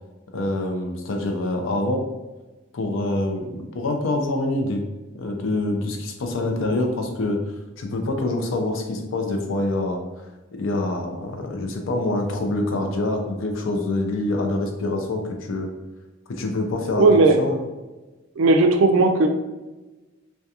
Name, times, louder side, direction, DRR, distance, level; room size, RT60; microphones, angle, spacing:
voice 1, 0.3-2.0 2.7-4.8 5.2-7.4 7.8-10.0 10.5-15.7 16.3-17.6, left 2 dB, 90° left, 3 dB, 0.5 m, -25 dB
voice 2, 17.0-17.4 18.4-19.3, right 3 dB, 85° right, 6 dB, 0.3 m, -16 dB
2.4 x 2.2 x 2.7 m, 1.1 s
head